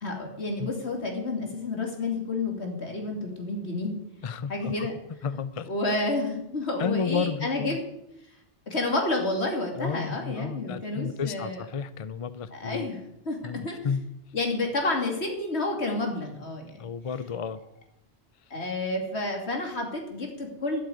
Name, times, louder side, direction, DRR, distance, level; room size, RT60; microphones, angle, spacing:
voice 1, 0.0-4.0 4.5-4.9 5.7-7.8 8.7-11.6 12.5-13.0 13.3-13.4 13.6-13.8 14.3-16.8 18.5-20.8, left 2 dB, 75° left, 2 dB, 3.0 m, -30 dB
voice 2, 4.2-5.7 6.8-7.8 9.8-12.9 13.4-14.1 16.8-17.6, left 5 dB, 40° left, 14 dB, 0.6 m, -32 dB
12.0 x 7.9 x 9.4 m, 0.82 s
omnidirectional pair, 1.1 m